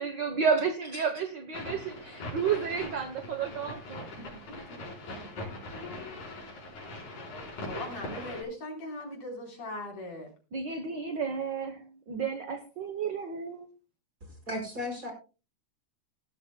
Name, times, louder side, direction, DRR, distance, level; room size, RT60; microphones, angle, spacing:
voice 1, 0.0-4.1 10.5-13.7, right 6 dB, 60° right, 9 dB, 1.1 m, -31 dB
sound 1, 1.5-8.4, left 2 dB, 75° left, 5.6 m, -41 dB
voice 2, 7.6-10.3, left 1 dB, 55° left, 1 dB, 5.1 m, -39 dB
voice 3, 14.2-15.1, left 1 dB, 25° right, 3 dB, 5.3 m, -36 dB
18.5 x 12.5 x 2.2 m, 0.32 s
omnidirectional pair, 3.4 m